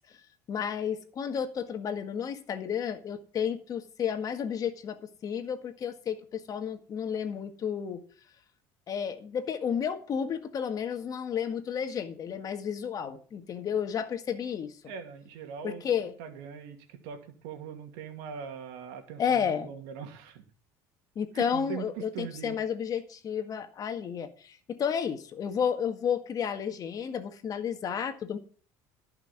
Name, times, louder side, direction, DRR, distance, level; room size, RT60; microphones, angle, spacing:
voice 1, 0.5-8.0 8.9-14.7 15.6-16.1 19.2-19.7 21.2-28.4, left 7 dB, 40° left, 1.7 m, -32 dB
voice 2, 14.8-20.4 21.3-22.6, right 7 dB, 85° right, 2.5 m, -41 dB
14.5 x 5.9 x 7.2 m
supercardioid pair, 110°, 9 cm